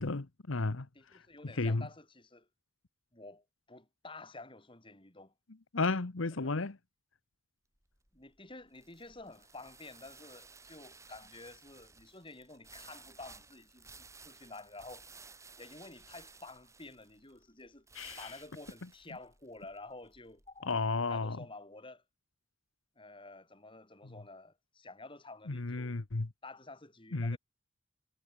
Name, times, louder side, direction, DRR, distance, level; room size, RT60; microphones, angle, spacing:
voice 1, 0.0-0.9 1.1-1.9 5.7-6.8 17.9-18.3 20.6-21.4 24.0-24.1 25.5-26.3 27.1-27.4, left 3 dB, 90° left, 1.1 m, -33 dB
voice 2, 0.9-2.5 3.1-5.3 6.3-6.5 8.1-15.1 15.6-17.9 18.2-20.7 21.1-22.0 23.0-26.0 26.4-27.4, left 2 dB, 25° left, 4.2 m, -51 dB
sound 1, 7.8-21.0, right 4 dB, 15° right, 6.1 m, -56 dB
head